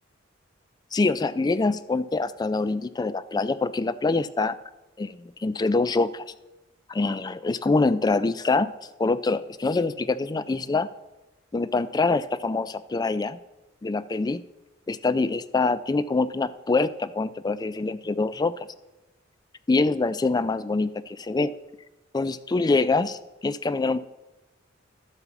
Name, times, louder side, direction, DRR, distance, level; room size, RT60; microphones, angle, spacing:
voice 1, 0.9-4.6 5.0-6.3 6.9-8.7 9.0-10.9 11.5-13.4 13.8-14.4 14.9-18.5 19.7-21.5 22.1-24.0, left 3 dB, 20° left, 14 dB, 0.3 m, -25 dB
12.5 x 4.9 x 7.0 m, 1.0 s
head